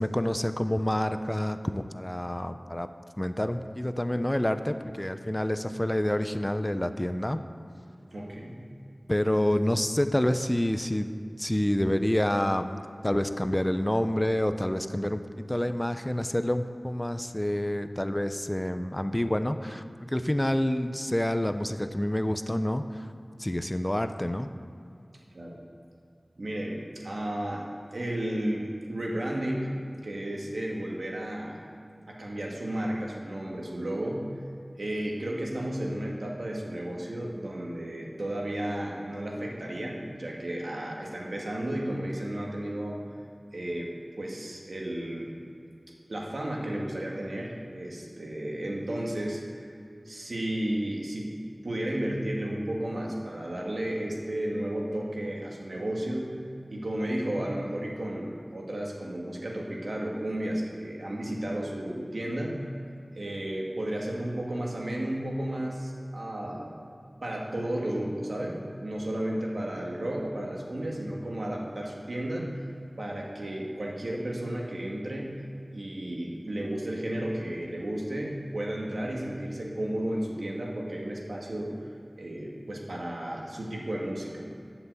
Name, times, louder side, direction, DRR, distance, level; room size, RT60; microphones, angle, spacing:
voice 1, 0.0-2.9 3.2-7.4 9.1-11.1 11.4-12.7 13.0-15.2 15.5-23.1 23.4-24.5, left 1 dB, 20° left, 9 dB, 0.6 m, -28 dB
voice 2, 8.1-8.6 25.3-25.6 26.4-27.7 27.9-29.7 30.0-31.6 32.1-34.3 34.8-43.0 43.5-43.9 44.2-45.3 46.1-49.7 50.1-51.3 51.6-56.4 56.7-62.6 63.1-66.8 67.2-72.6 73.0-75.4 75.7-81.7 82.2-84.5, right 1 dB, 80° right, -2 dB, 1.9 m, -33 dB
12.0 x 5.9 x 8.2 m, 2.5 s
wide cardioid pair, 45°, 0 cm